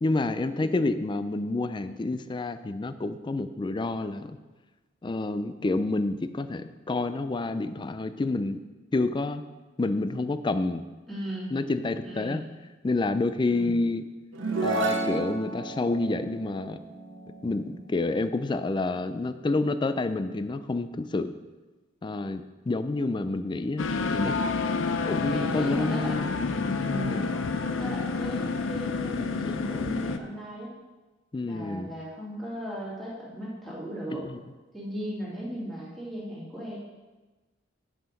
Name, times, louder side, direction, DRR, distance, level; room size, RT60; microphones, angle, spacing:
voice 1, 0.0-4.4 5.0-8.6 8.9-9.4 9.8-10.8 11.5-12.4 12.8-14.0 14.6-16.8 17.4-21.3 22.0-24.4 25.1-27.3 31.3-31.9 34.1-34.4, left 2 dB, 25° left, 11 dB, 0.4 m, -29 dB
voice 2, 11.1-11.5 12.0-12.5 13.5-13.8 25.3-26.2 26.9-27.3 27.8-30.7 31.4-34.2 34.7-36.8, equal, ahead, -8 dB, 2.5 m, -36 dB
sound 1, 14.3-17.9, right 3 dB, 85° right, 1.2 m, -31 dB
sound 2, 23.8-30.2, left 4 dB, 85° left, 0.5 m, -29 dB
8.5 x 5.6 x 5.3 m, 1.2 s
head